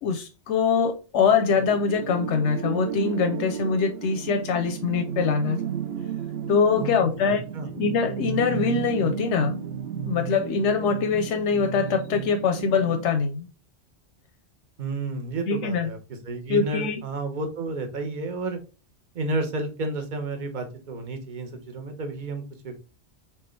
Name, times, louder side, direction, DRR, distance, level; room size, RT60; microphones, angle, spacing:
voice 1, 0.0-5.6 6.5-7.4 7.8-9.5 10.0-13.5 15.5-15.9 16.5-17.0, left 5 dB, 90° left, 0.9 m, -23 dB
sound 1, 1.1-13.2, right 8 dB, 65° right, 0.7 m, -33 dB
voice 2, 6.7-7.7 14.8-18.6 19.1-22.8, right 2 dB, 45° right, 1.0 m, -31 dB
4.7 x 3.6 x 3.1 m
omnidirectional pair, 1.1 m